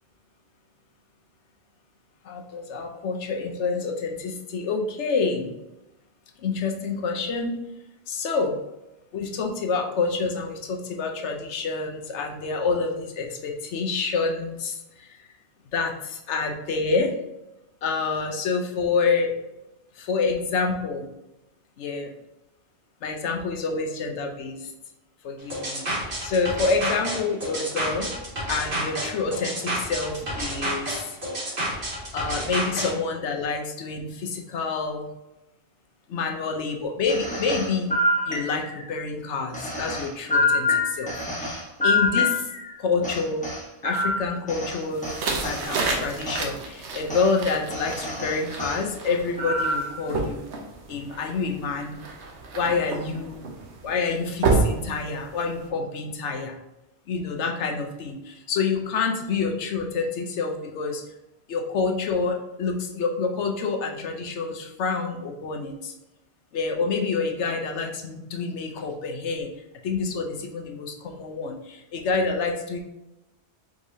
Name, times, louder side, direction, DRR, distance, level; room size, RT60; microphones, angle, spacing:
voice 1, 2.2-5.5 6.4-7.6 8.1-8.5 9.1-15.2 15.7-17.1 17.8-19.3 20.0-21.1 21.8-22.1 23.0-24.7 25.2-25.9 26.2-28.1 28.5-31.5 32.1-35.1 36.1-37.9 38.3-42.5 42.8-43.4 43.8-45.1 45.4-50.5 50.9-51.9 52.5-53.4 53.8-56.6 57.1-61.0 61.5-65.9 66.5-69.5 69.8-72.8, left 4 dB, 90° left, 3 dB, 1.0 m, -27 dB
sound 1, 25.5-32.9, right 1 dB, 50° right, 2.0 m, -29 dB
sound 2, 37.1-38.9 39.5-42.7 43.0-45.6 46.2-46.5 47.1-47.3 47.7-48.8 49.4-50.0, left 2 dB, 5° left, 0.9 m, -26 dB
sound 3, 44.9-55.7, right 3 dB, 85° right, 1.1 m, -30 dB
4.8 x 3.7 x 2.7 m, 0.92 s
omnidirectional pair, 1.1 m